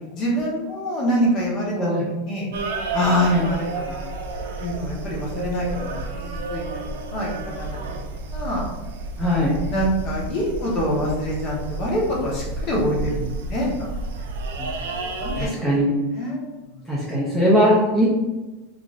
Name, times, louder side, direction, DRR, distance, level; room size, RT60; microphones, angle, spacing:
voice 1, 0.1-1.9 2.3-2.5 2.9-4.1 4.6-7.8 8.1-8.7 9.2-9.4 9.7-13.7 14.2-14.3 14.9-15.7 16.1-16.8, equal, 30° left, -3 dB, 0.7 m, -25 dB
sound 1, 2.5-15.5, right 2 dB, 80° right, 0.4 m, -31 dB
voice 2, 9.2-9.5 14.6-14.7 15.4-15.9 16.9-18.0, equal, ahead, -8 dB, 0.4 m, -20 dB
2.5 x 2.4 x 3.0 m, 1.1 s
supercardioid pair, 175°, 0 cm